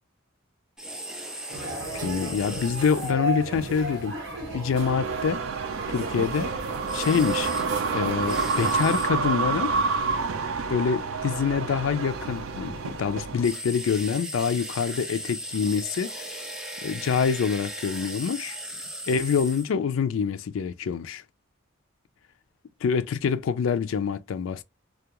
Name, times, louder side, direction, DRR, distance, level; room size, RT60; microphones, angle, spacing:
sound 1, 0.8-3.1 6.9-7.7 8.3-9.1 13.4-19.7, equal, 5° right, 0.4 m, -37 dB
sound 2, 1.5-8.7, right 1 dB, 55° right, 1.1 m, -35 dB
voice 1, 2.0-4.1 4.5-5.4 5.9-6.5 6.9-7.5 7.9-9.7 10.7-16.3 16.8-18.6 19.1-21.2 22.8-24.6, left 6 dB, 70° left, 0.3 m, -26 dB
sound 3, 4.7-13.5, right 4 dB, 80° right, 0.4 m, -28 dB
2.3 x 2.2 x 2.9 m
head